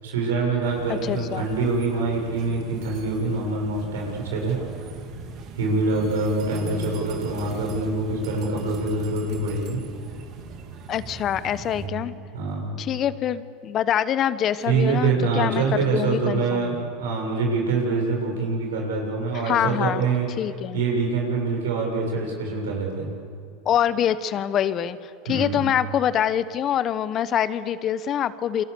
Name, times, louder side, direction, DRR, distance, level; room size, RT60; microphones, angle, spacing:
voice 1, 0.0-4.6 5.6-9.8 11.7-12.1 12.3-12.8 14.7-20.3 20.7-23.1 25.3-25.6, right 3 dB, 80° right, 0 dB, 6.9 m, -25 dB
sound 1, 0.6-11.9, right 5 dB, 50° right, 3.4 m, -39 dB
voice 2, 0.9-1.5 10.9-12.1 12.8-16.7 19.3-20.0 20.4-20.8 23.6-28.6, left 10 dB, 40° left, 15 dB, 1.0 m, -25 dB
28.5 x 24.5 x 7.0 m, 2.4 s
hypercardioid pair, 95°, 0 cm